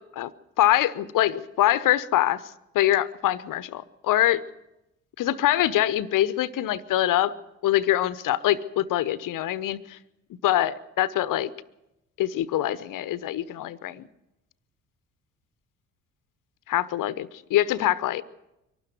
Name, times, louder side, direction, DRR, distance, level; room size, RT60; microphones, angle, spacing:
voice 1, 0.6-2.4 2.7-4.4 5.2-7.3 7.6-10.0 10.4-11.5 12.2-14.0 16.7-18.2, left 13 dB, 55° left, 18 dB, 1.0 m, -24 dB
23.5 x 12.5 x 9.4 m, 0.91 s
hypercardioid pair, 50°, 39 cm